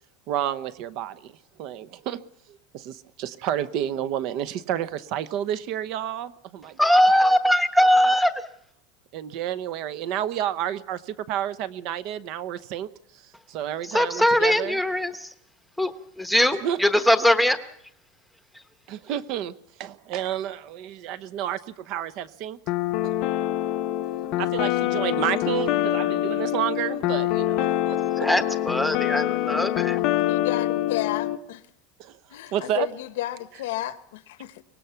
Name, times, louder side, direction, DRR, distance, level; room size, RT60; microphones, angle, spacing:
voice 1, 0.3-2.2 2.5-6.9 9.1-14.8 16.6-16.8 18.9-19.5 19.8-22.6 24.4-27.7 32.0-32.2 32.5-32.9, right 11 dB, 45° right, 0.9 m, -30 dB
voice 2, 6.8-8.3 13.9-15.3 15.8-17.6 28.2-30.0, left 1 dB, ahead, 1.0 m, -21 dB
sound 1, 22.7-31.4, left 14 dB, 40° left, 0.8 m, -25 dB
voice 3, 30.2-31.6 32.3-34.6, left 15 dB, 80° left, 1.1 m, -32 dB
23.5 x 19.0 x 5.8 m
supercardioid pair, 170°, 0 cm